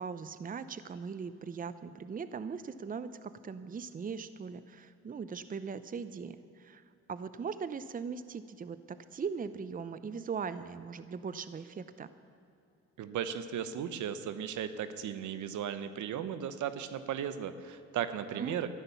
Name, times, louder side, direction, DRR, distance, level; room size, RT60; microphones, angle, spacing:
voice 1, 0.0-6.8 7.1-12.1 18.3-18.6, right 5 dB, 30° right, 13 dB, 0.7 m, -40 dB
voice 2, 13.0-18.7, right 9 dB, 75° right, 12 dB, 1.0 m, -36 dB
14.0 x 11.0 x 7.0 m, 2.6 s
cardioid pair, 90°, 30 cm